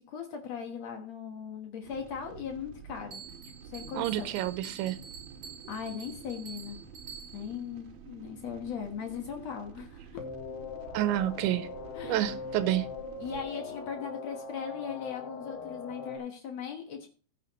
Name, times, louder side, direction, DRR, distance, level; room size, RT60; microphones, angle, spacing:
voice 1, 0.0-3.2 3.7-4.3 5.7-6.8 7.3-10.2 11.9-12.2 13.2-17.1, left 7 dB, 85° left, 1.5 m, -39 dB
sound 1, 1.8-13.4, right 5 dB, 65° right, 2.8 m, -50 dB
Bell, 3.1-7.6, right 6 dB, 35° right, 4.4 m, -47 dB
voice 2, 4.0-5.0 10.9-11.7 12.0-12.9, right 14 dB, 85° right, 3.1 m, -29 dB
sound 2, 10.2-16.2, left 5 dB, 60° left, 3.1 m, -41 dB
15.5 x 9.2 x 3.0 m
omnidirectional pair, 5.2 m